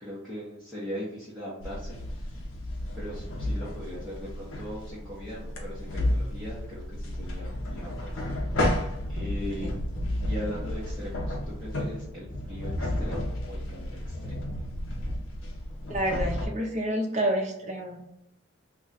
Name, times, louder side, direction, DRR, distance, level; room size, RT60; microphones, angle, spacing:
voice 1, 0.0-2.3 3.0-8.1 9.1-9.7 10.3-14.4, left 1 dB, ahead, -11 dB, 0.8 m, -39 dB
sound 1, 1.6-16.5, left 1 dB, 70° left, 0.7 m, -32 dB
voice 2, 15.9-18.0, right 1 dB, 35° right, 1 dB, 0.6 m, -29 dB
2.4 x 2.2 x 3.9 m, 0.83 s
head